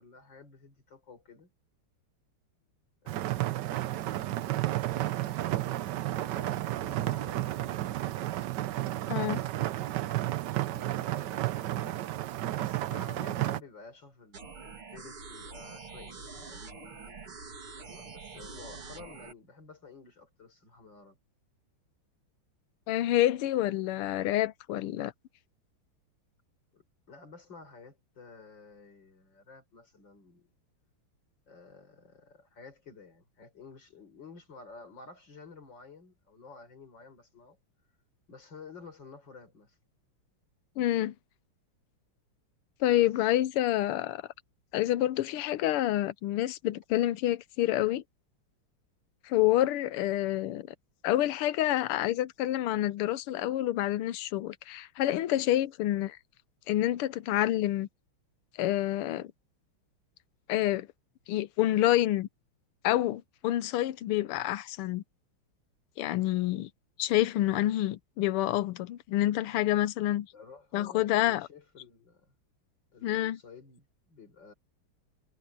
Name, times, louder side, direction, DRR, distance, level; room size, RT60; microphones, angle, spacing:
voice 1, 0.0-1.5 3.0-4.3 4.8-7.9 10.6-12.1 12.5-17.4 17.8-21.2 26.7-30.6 31.5-37.6 38.3-39.7 42.8-43.0 70.3-72.3 72.9-74.5, left 4 dB, 55° left, 4.9 m, -52 dB
sound 1, 3.1-13.6, right 15 dB, 70° right, 1.1 m, -32 dB
voice 2, 9.1-9.4 22.9-25.1 40.8-41.2 42.8-44.2 44.7-48.0 49.2-50.7 51.0-56.2 56.7-57.9 58.6-59.3 60.5-60.9 61.3-62.3 62.8-65.0 66.0-66.7 67.0-70.3 70.7-71.5 73.0-73.4, left 14 dB, 85° left, 1.7 m, -28 dB
sound 2, 14.3-19.3, right 4 dB, 85° right, 4.1 m, -45 dB
omnidirectional pair, 2.4 m